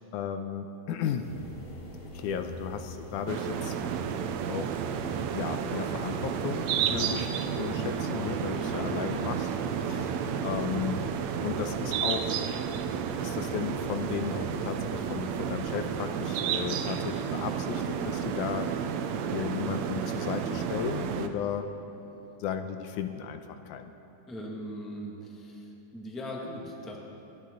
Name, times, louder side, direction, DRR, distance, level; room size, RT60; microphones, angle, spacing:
voice 1, 0.1-1.3 2.1-3.7 4.5-4.8 5.3-7.3 7.6-10.1 10.4-11.1 11.4-12.4 13.2-18.7 19.3-21.7 22.4-23.9, left 8 dB, 85° left, 8 dB, 2.1 m, -35 dB
sound 1, 1.2-15.5, equal, 65° left, 4.0 m, -44 dB
sound 2, 3.3-21.3, right 8 dB, 75° right, 1.7 m, -31 dB
voice 2, 6.8-7.2 7.7-8.0 8.6-8.9 24.3-27.0, equal, ahead, -2 dB, 0.9 m, -39 dB
27.5 x 10.5 x 3.9 m, 3.0 s
omnidirectional pair, 3.6 m